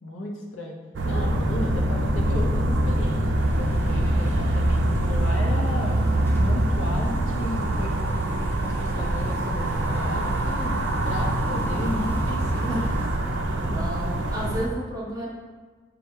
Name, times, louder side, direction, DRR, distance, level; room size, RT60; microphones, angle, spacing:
voice 1, 0.0-0.8 1.0-8.2 8.6-10.7 11.0-13.0, left 1 dB, 90° left, 0 dB, 0.7 m, -34 dB
sound 1, 0.9-14.7, right 1 dB, 65° right, 0.4 m, -24 dB
sound 2, 3.3-13.1, left 1 dB, 10° left, 0.4 m, -39 dB
voice 2, 13.3-15.3, equal, 20° right, -4 dB, 0.7 m, -32 dB
5.4 x 2.3 x 3.5 m, 1.4 s
head